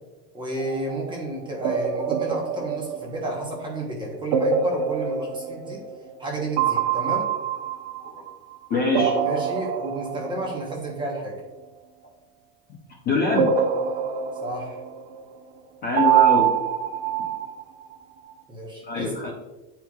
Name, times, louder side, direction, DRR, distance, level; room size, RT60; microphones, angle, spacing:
voice 1, 0.3-5.8 6.2-7.3 9.2-11.4 14.4-14.8 18.5-19.1, right 1 dB, 10° right, -2 dB, 0.9 m, -31 dB
sound 1, 0.6-1.1 1.6-3.7 4.3-6.3 6.6-8.6 8.9-10.7 13.4-15.2 16.0-17.9, right 8 dB, 45° right, 0.5 m, -25 dB
voice 2, 8.7-9.2 13.1-13.5 15.8-16.5 18.9-19.3, left 3 dB, 20° left, -3 dB, 0.6 m, -24 dB
10.0 x 4.6 x 2.3 m, 1.1 s
supercardioid pair, 165°, 48 cm